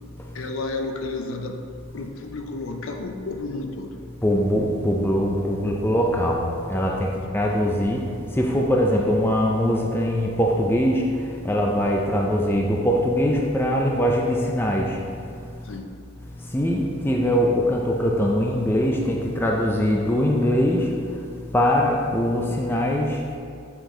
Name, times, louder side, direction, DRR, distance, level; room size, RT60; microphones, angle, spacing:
voice 1, 0.3-1.6 1.9-3.9 7.1-7.2 15.6-15.9, left 3 dB, 60° left, 4 dB, 0.5 m, -31 dB
voice 2, 4.2-8.0 8.3-15.0 16.5-20.9 21.5-23.2, equal, 10° left, -1 dB, 0.4 m, -22 dB
7.0 x 4.4 x 3.8 m, 2.3 s
head